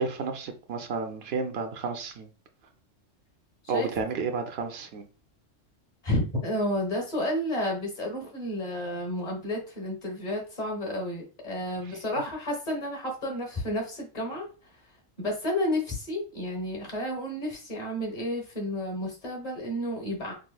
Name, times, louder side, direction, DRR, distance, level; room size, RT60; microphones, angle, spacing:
voice 1, 0.0-2.3 3.7-5.1 11.8-12.0, right 4 dB, 60° right, 0.7 m, -31 dB
voice 2, 6.0-14.5 15.2-20.3, left 1 dB, 35° left, 1.2 m, -31 dB
4.9 x 2.1 x 2.3 m
omnidirectional pair, 1.3 m